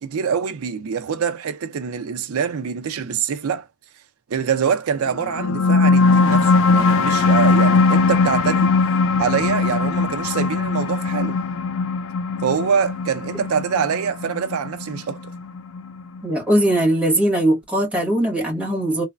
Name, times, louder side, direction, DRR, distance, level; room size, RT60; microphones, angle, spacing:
voice 1, 0.0-3.7 4.3-8.7 9.2-11.4 12.4-15.2, right 6 dB, 75° right, 0.4 m, -24 dB
sound 1, 5.2-16.2, left 4 dB, 65° left, 0.4 m, -19 dB
voice 2, 16.2-19.0, right 1 dB, 5° right, 1.2 m, -20 dB
3.1 x 2.1 x 2.3 m
head